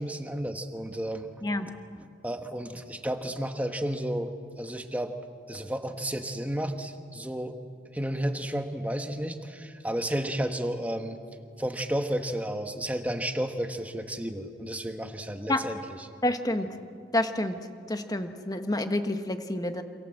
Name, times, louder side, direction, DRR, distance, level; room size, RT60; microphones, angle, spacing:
voice 1, 0.0-1.3 1.6-1.7 2.0-4.3 4.6-5.1 5.5-7.5 7.9-11.2 11.6-16.1, right 1 dB, 10° right, 6 dB, 1.5 m, -32 dB
voice 2, 16.2-16.7 17.1-17.5 17.9-19.8, left 1 dB, 20° left, 7 dB, 1.4 m, -28 dB
28.0 x 27.5 x 7.8 m, 2.3 s
head